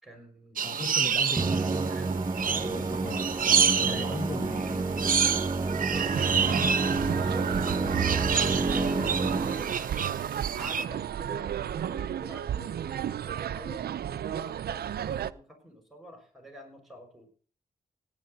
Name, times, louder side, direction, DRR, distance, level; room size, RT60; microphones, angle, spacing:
voice 1, 0.0-1.2 1.9-2.1 2.5-2.8 3.8-4.3 5.0-14.8 15.1-17.3, right 1 dB, ahead, 2 dB, 6.1 m, -47 dB
voice 2, 0.6-1.9 2.5-3.2 3.8-5.2, left 3 dB, 30° left, 6 dB, 1.4 m, -38 dB
sound 1, 0.6-10.8, right 7 dB, 60° right, 0.9 m, -29 dB
Musical instrument, 1.4-9.9, right 3 dB, 25° right, 0.9 m, -29 dB
sound 2, 5.9-15.3, right 10 dB, 80° right, 0.5 m, -33 dB
16.5 x 10.0 x 4.0 m, 0.40 s
cardioid pair, 70°, 16 cm